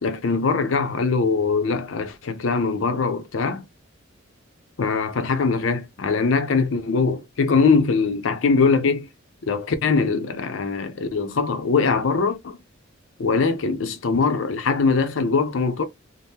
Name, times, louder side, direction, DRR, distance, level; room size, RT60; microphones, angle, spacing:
voice 1, 0.0-3.6 4.8-9.1 9.5-12.6 13.2-15.8, left 4 dB, 75° left, 0.5 m, -22 dB
2.8 x 2.0 x 3.4 m
head